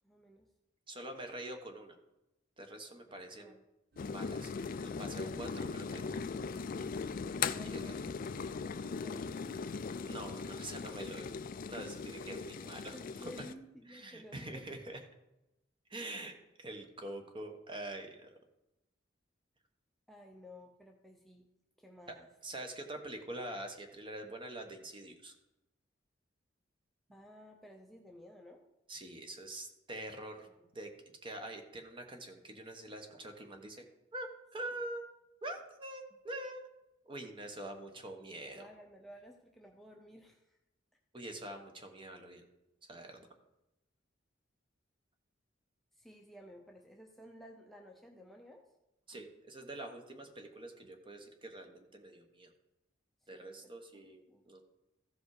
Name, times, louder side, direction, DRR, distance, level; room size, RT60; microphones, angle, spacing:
voice 1, 0.0-0.5 3.1-3.6 12.4-14.7 20.1-21.5 21.8-22.3 27.1-28.6 30.6-30.7 38.4-40.6 45.9-48.7 53.2-53.7 54.3-54.4, equal, ahead, 1 dB, 0.7 m, -55 dB
voice 2, 0.9-2.0 2.6-3.6 4.0-4.5 4.8-6.1 7.6-7.9 10.0-11.3 11.7-13.5 13.9-15.0 15.9-18.3 22.1-22.2 22.4-25.3 28.9-30.5 30.7-30.9 31.2-33.9 34.1-35.0 35.4-36.6 37.0-38.7 41.1-42.4 42.9-43.3 49.1-52.5 53.3-54.6, right 1 dB, 25° right, 5 dB, 1.2 m, -45 dB
sound 1, 3.9-11.6, right 2 dB, 55° right, 1.1 m, -61 dB
sound 2, 4.0-13.5, left 5 dB, 45° left, 0.4 m, -39 dB
14.5 x 5.1 x 4.8 m, 0.94 s
head